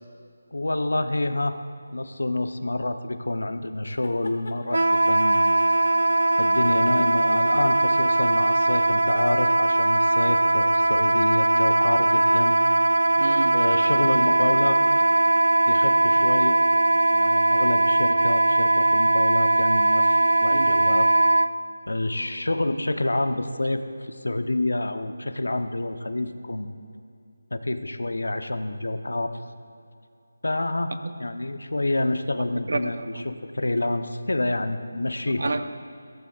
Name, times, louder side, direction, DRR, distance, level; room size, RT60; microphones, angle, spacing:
voice 1, 0.5-1.6 1.9-5.5 6.4-12.5 13.5-14.8 15.6-16.6 17.1-21.1 21.9-26.7 27.5-29.4 30.4-30.9 31.2-35.5, left 2 dB, 85° left, 9 dB, 0.9 m, -28 dB
sound 1, 3.9-4.6 5.1-6.5 6.8-9.0, left 3 dB, 65° left, 2.1 m, -45 dB
Wind instrument woodwind instrument, 4.7-21.5, right 2 dB, 80° right, 0.4 m, -20 dB
voice 2, 13.2-13.6 20.5-20.8 31.0-31.1 32.7-33.2 35.3-35.6, right 3 dB, 65° right, 9 dB, 0.9 m, -30 dB
21.5 x 17.0 x 2.5 m, 2.5 s
figure-of-eight pair, 165°, 0 cm